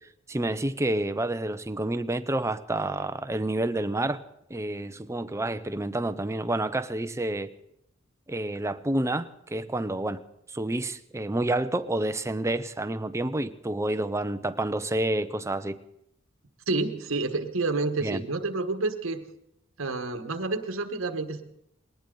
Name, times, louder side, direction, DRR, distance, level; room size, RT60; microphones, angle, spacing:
voice 1, 0.3-4.2 4.5-7.5 8.3-10.2 10.5-15.8 18.0-18.2, right 1 dB, 15° right, 0.6 m, -29 dB
voice 2, 16.7-19.2 19.8-21.4, right 3 dB, 80° right, 1.3 m, -29 dB
20.0 x 18.5 x 3.9 m
head